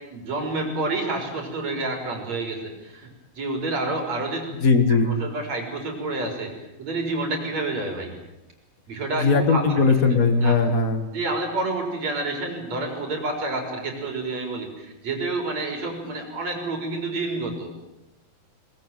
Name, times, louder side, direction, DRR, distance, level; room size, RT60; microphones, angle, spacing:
voice 1, 0.1-3.1 3.4-4.5 4.9-6.5 6.8-8.1 8.9-9.6 10.4-10.5 11.1-17.7, right 2 dB, 40° right, 4 dB, 5.3 m, -29 dB
voice 2, 4.6-5.1 9.1-11.1, left 4 dB, 45° left, 8 dB, 1.1 m, -19 dB
22.5 x 20.5 x 9.1 m, 0.99 s
omnidirectional pair, 4.8 m